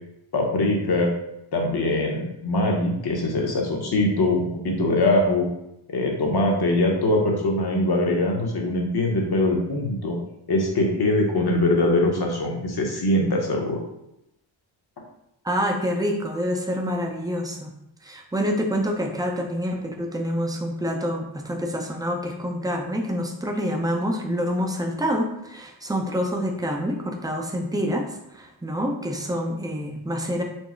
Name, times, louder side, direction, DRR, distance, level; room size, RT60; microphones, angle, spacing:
voice 1, 0.3-1.1 1.5-5.5 5.9-10.2 10.5-13.8, left 1 dB, 55° left, 0 dB, 0.9 m, -22 dB
voice 2, 15.4-17.7 18.0-28.1 28.3-30.4, equal, 10° right, 2 dB, 0.4 m, -27 dB
4.5 x 2.0 x 4.3 m, 0.83 s
wide cardioid pair, 155°, 48 cm